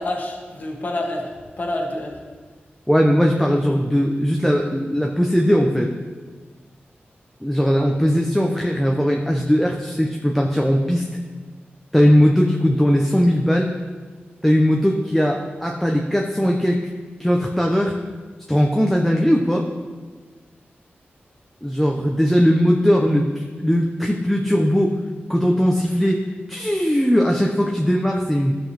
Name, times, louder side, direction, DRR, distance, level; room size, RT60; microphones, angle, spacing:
voice 1, 0.0-2.2, left 1 dB, 45° left, 0 dB, 1.4 m, -28 dB
voice 2, 2.9-5.9 7.4-11.1 11.9-13.7 14.4-16.8 17.2-18.0 18.5-19.7 21.6-24.9 25.3-26.2 26.5-28.5, equal, 5° left, 0 dB, 0.6 m, -19 dB
15.0 x 6.0 x 3.3 m, 1.4 s
wide cardioid pair, 120°, 4 cm